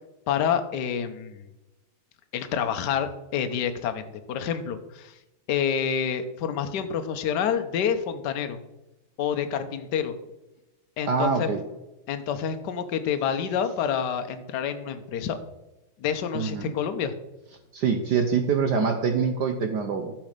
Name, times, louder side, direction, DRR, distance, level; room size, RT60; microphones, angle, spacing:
voice 1, 0.3-1.5 2.3-5.2 5.5-8.6 9.2-10.2 11.0-11.5 12.1-15.4 16.0-17.2, left 8 dB, 60° left, 8 dB, 1.4 m, -28 dB
voice 2, 11.1-11.6 16.3-16.7 17.7-20.1, right 5 dB, 60° right, 6 dB, 1.3 m, -25 dB
12.0 x 6.3 x 6.6 m, 1.0 s
omnidirectional pair, 2.4 m